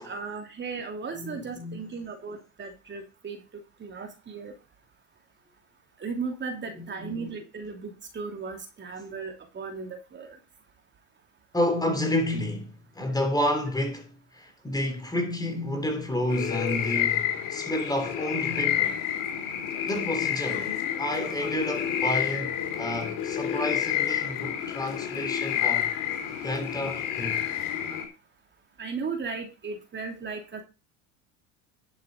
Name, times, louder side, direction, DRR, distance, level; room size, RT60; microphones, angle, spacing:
voice 1, 0.0-3.4 3.8-4.5 6.0-10.4 22.3-22.4 25.9-26.0 28.8-30.6, right 5 dB, 30° right, 2.8 m, -36 dB
voice 2, 1.1-1.8 6.8-7.3 11.5-19.0 19.8-20.7 21.0-25.9 26.4-27.4, left 1 dB, 10° left, 3.3 m, -30 dB
sound 1, 16.3-28.1, left 10 dB, 60° left, 3.5 m, -29 dB
11.0 x 7.0 x 4.9 m
hypercardioid pair, 90°, 38 cm